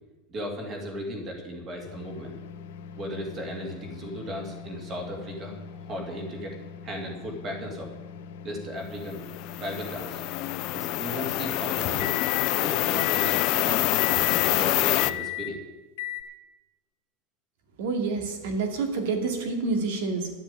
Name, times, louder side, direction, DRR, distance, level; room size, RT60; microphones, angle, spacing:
voice 1, 0.3-2.3 3.0-6.6 6.8-7.9 8.4-9.2 9.6-10.2 10.7-12.2 12.5-13.9 14.3-15.6, equal, 25° right, 2 dB, 2.4 m, -36 dB
sound 1, 1.8-12.5 13.0-13.5 14.0-14.5 15.0-15.5 16.0-16.2, left 10 dB, 80° left, 1.0 m, -39 dB
sound 2, 9.2-15.1, left 17 dB, 40° left, 0.4 m, -26 dB
voice 2, 17.8-20.3, right 4 dB, 65° right, 5 dB, 2.5 m, -28 dB
11.5 x 7.4 x 8.9 m, 1.1 s
supercardioid pair, 175°, 0 cm